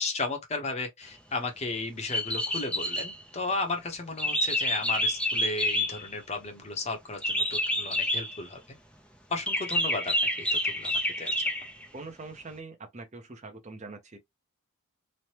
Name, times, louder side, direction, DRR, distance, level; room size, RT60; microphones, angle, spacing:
voice 1, 0.0-8.6 9.3-10.9 11.2-11.3, left 3 dB, 30° left, 0.8 m, -34 dB
sound 1, 2.1-3.2 4.2-6.2 7.2-8.4 9.5-11.9, left 1 dB, 5° left, 0.4 m, -28 dB
voice 2, 11.9-14.2, right 3 dB, 35° right, 0.7 m, -43 dB
3.2 x 2.1 x 2.8 m
head